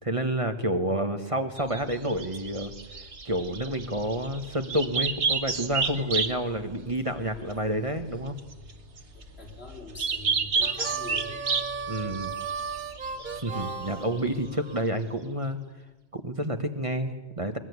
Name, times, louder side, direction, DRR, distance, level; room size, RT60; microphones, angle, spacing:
voice 1, 0.0-2.7 3.0-8.4 11.9-12.3 13.3-15.6 16.1-17.6, right 1 dB, 30° right, 6 dB, 1.5 m, -29 dB
sound 1, 1.6-14.5, right 5 dB, 85° right, 1.8 m, -32 dB
sound 2, 8.3-13.5, left 1 dB, 5° right, 6.8 m, -52 dB
voice 2, 9.1-11.5, left 1 dB, 65° left, 0 dB, 5.6 m, -44 dB
Harmonica, 10.6-14.9, right 5 dB, 45° right, 1.3 m, -36 dB
21.5 x 21.5 x 9.6 m, 1.1 s
omnidirectional pair, 1.1 m